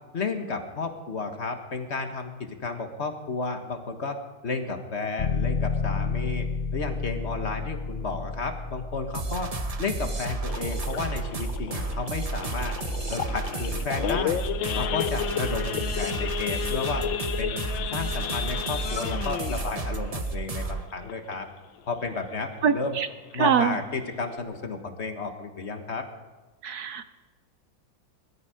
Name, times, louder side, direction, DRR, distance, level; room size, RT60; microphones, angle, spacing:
voice 1, 0.1-4.2 4.4-6.5 6.7-9.5 9.8-12.7 13.1-14.4 14.7-17.0 17.4-21.5 21.9-23.0 23.3-26.1, left 4 dB, 40° left, 5 dB, 1.5 m, -32 dB
sound 1, 5.2-15.7, left 5 dB, 60° left, 0.6 m, -33 dB
sound 2, 9.1-20.9, right 3 dB, 35° right, 0.6 m, -32 dB
Idling / Accelerating revving vroom / Sawing, 10.5-21.6 22.0-22.2 22.4-22.5 23.0-23.3 23.7-23.8 24.0-24.4, left 10 dB, 80° left, 1.5 m, -33 dB
voice 2, 22.6-23.1 23.4-23.8 26.6-27.0, right 7 dB, 70° right, 10 dB, 1.0 m, -23 dB
21.5 x 13.0 x 5.0 m, 1.2 s
omnidirectional pair, 2.1 m